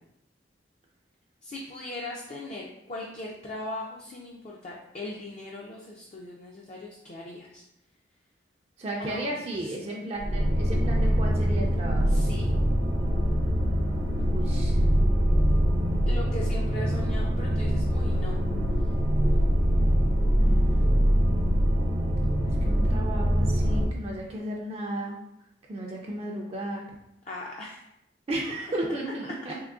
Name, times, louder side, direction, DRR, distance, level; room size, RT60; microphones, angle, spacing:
voice 1, 1.4-7.6 9.0-9.4 9.8-10.1 12.1-12.5 16.0-18.4 27.3-27.8, left 2 dB, 40° left, -2 dB, 0.4 m, -39 dB
voice 2, 8.8-12.2 14.3-14.8 20.4-20.8 22.4-25.2 25.7-26.9 28.3-29.7, right 1 dB, 35° right, -1 dB, 0.4 m, -34 dB
sound 1, 10.2-23.9, equal, 85° right, 0.6 m, -23 dB
3.7 x 2.9 x 2.3 m, 0.82 s
head